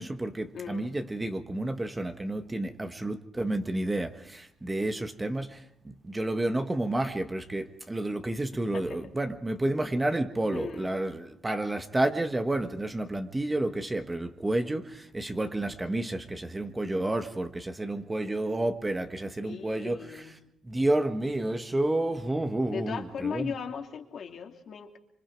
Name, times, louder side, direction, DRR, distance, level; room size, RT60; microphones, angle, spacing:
voice 1, 0.0-5.6 6.0-20.2 20.7-23.5, right 1 dB, 15° right, 1.4 m, -30 dB
voice 2, 0.5-1.0 8.7-9.1 10.5-10.9 19.4-20.3 22.7-25.0, left 6 dB, 60° left, 2.7 m, -37 dB
26.0 x 24.5 x 4.7 m
cardioid pair, 90°, 0 cm